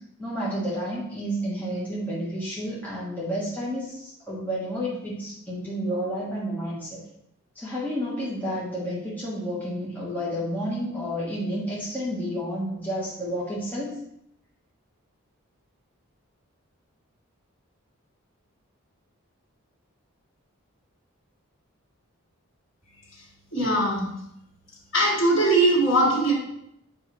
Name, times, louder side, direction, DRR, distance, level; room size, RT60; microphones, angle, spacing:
voice 1, 0.2-7.0 7.5-14.0, equal, 5° left, -8 dB, 1.2 m, -30 dB
voice 2, 23.5-24.0 24.9-26.3, right 1 dB, 55° left, -5 dB, 2.5 m, -20 dB
7.0 x 5.3 x 3.1 m, 0.76 s
head